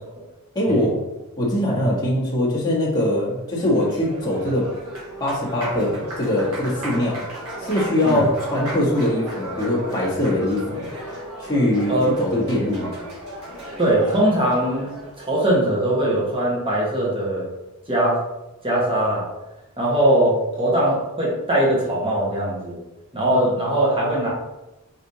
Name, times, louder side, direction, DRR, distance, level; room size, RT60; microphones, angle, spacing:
voice 1, 0.5-1.0 1.4-4.7 5.2-7.2 7.6-10.9 11.4-13.0, left 1 dB, 20° left, -6 dB, 1.1 m, -22 dB
Applause, 3.3-15.2, equal, 75° right, 1.2 m, -34 dB
voice 2, 13.8-14.9 15.2-17.5 17.9-18.2 18.6-19.3 19.8-22.8 23.1-24.3, right 1 dB, 25° right, -5 dB, 1.2 m, -21 dB
5.0 x 2.9 x 2.7 m, 0.99 s
head